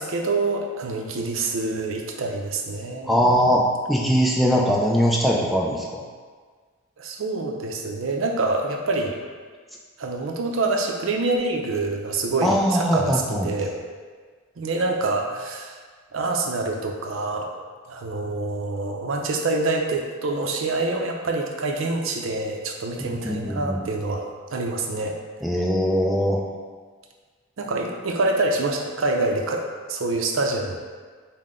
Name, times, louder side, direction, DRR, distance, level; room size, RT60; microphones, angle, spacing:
voice 1, 0.0-3.3 7.0-9.2 10.0-13.8 14.6-15.8 16.1-25.2 27.6-30.8, right 2 dB, 70° right, 2 dB, 0.5 m, -26 dB
voice 2, 3.0-6.0 12.4-13.5 23.0-23.8 25.4-26.4, equal, ahead, -3 dB, 0.4 m, -21 dB
5.6 x 2.1 x 3.6 m, 1.5 s
head